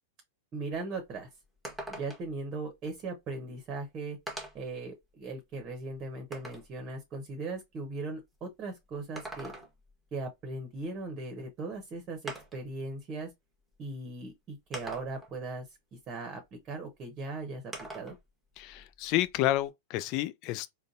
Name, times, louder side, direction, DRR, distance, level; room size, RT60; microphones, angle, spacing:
voice 1, 0.5-1.3 1.9-4.2 4.5-9.5 10.1-13.3 13.8-18.2, right 3 dB, 35° right, 0.9 m, -39 dB
sound 1, 0.7-0.8 1.1-1.2 1.6-2.4 3.5-3.6 4.3-4.7 5.3-6.7 8.9-9.9 11.4-11.5 12.3-12.7 13.7-13.8 14.7-15.4 17.7-18.2 18.6-19.7, right 2 dB, 5° right, 1.0 m, -43 dB
voice 2, 18.6-20.7, left 14 dB, 45° left, 0.3 m, -30 dB
3.8 x 2.2 x 2.5 m
hypercardioid pair, 105°, 0 cm